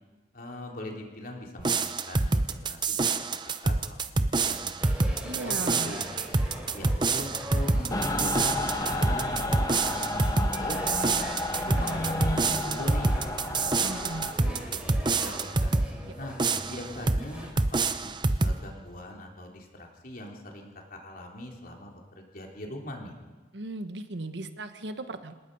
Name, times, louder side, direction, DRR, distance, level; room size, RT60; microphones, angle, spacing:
voice 1, 0.3-4.1 4.4-4.8 5.5-6.1 6.7-10.1 10.6-11.1 11.7-14.9 15.2-15.7 16.2-16.4 16.7-23.1, left 1 dB, 50° left, 0 dB, 3.6 m, -41 dB
sound 1, 1.6-15.9 16.4-17.3 17.6-18.6, right 3 dB, 25° right, 0.7 m, -27 dB
sound 2, 4.8-17.5, equal, 5° right, 4.1 m, -41 dB
voice 2, 5.2-5.9 13.7-14.3 16.0-16.1 23.5-25.3, right 2 dB, 65° right, 9 dB, 1.3 m, -37 dB
Mechanical fan, 7.9-14.3, left 2 dB, 20° left, 1.3 m, -32 dB
26.5 x 18.5 x 5.5 m, 1.3 s
head